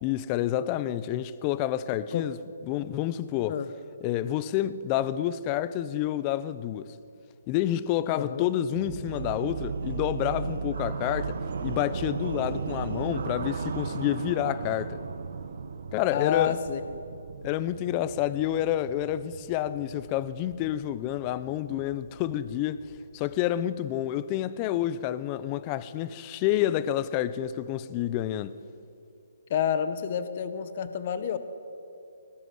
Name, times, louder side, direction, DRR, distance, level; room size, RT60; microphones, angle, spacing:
voice 1, 0.0-2.4 2.7-3.6 4.0-6.9 7.5-15.0 15.9-16.6 17.4-22.8 23.1-28.6, left 12 dB, 25° left, 0.9 m, -29 dB
voice 2, 8.1-8.5 16.1-16.8 29.5-31.4, left 8 dB, 45° left, 1.5 m, -29 dB
sound 1, 8.7-23.6, right 5 dB, 65° right, 1.7 m, -36 dB
22.5 x 19.5 x 9.7 m
hypercardioid pair, 150°, 0 cm